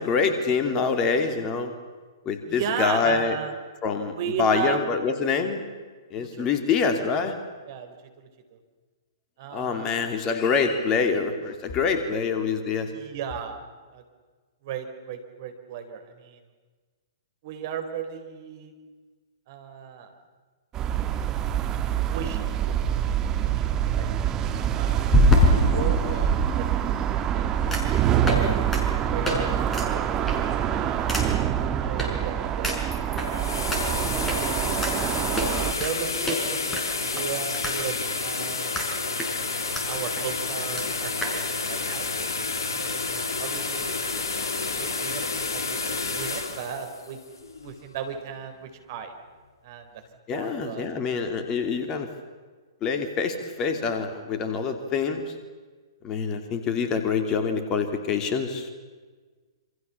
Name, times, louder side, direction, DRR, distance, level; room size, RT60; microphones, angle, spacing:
voice 1, 0.0-1.7 2.2-3.4 3.8-4.1 4.4-5.6 6.1-7.3 9.5-12.9 50.3-52.1 52.8-55.3 56.0-58.8, left 5 dB, 25° left, 6 dB, 2.9 m, -25 dB
voice 2, 2.5-3.6 4.1-4.8 6.2-6.5 7.7-8.6 9.4-10.2 12.9-13.6 13.9-14.0 14.6-16.4 17.4-18.7 19.5-20.1 22.1-27.5 27.9-28.7 29.1-30.0 30.7-34.3 34.7-38.7 39.9-42.1 42.6-44.0 44.7-47.2 47.6-49.1 49.6-49.9 50.3-50.8, right 7 dB, 45° right, 6 dB, 4.2 m, -36 dB
sound 1, 20.7-35.7, right 10 dB, 20° right, 1.8 m, -26 dB
sound 2, 22.6-22.7 25.1-26.4 27.7-27.9 28.2-28.4 28.7-28.8 29.2-29.4 29.7-29.9 30.3-30.5 31.1-31.2 32.0-32.1 32.6-33.3 33.7-33.8 34.3-34.4 34.8-34.9 35.4-35.9 36.3-36.4 36.7-37.8 38.0-38.1 38.7-38.9 39.2-39.8 40.2-40.3 40.5-40.6 40.8-40.9 41.2-41.3, equal, 10° left, 5.6 m, -24 dB
sound 3, 33.0-48.0, left 4 dB, 60° left, 3.4 m, -30 dB
27.5 x 26.5 x 7.2 m, 1.4 s
figure-of-eight pair, 115°, 2 cm